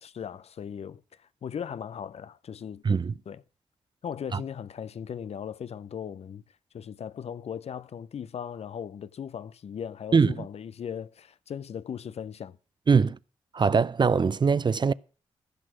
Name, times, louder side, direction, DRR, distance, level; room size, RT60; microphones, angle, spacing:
voice 1, 0.0-2.8 3.3-3.4 4.0-6.4 6.7-12.6, left 8 dB, 60° left, 0.6 m, -38 dB
voice 2, 10.1-10.4 12.9-13.2 13.5-14.9, right 5 dB, 40° right, 0.5 m, -22 dB
15.5 x 6.3 x 6.2 m
supercardioid pair, 45°, 12 cm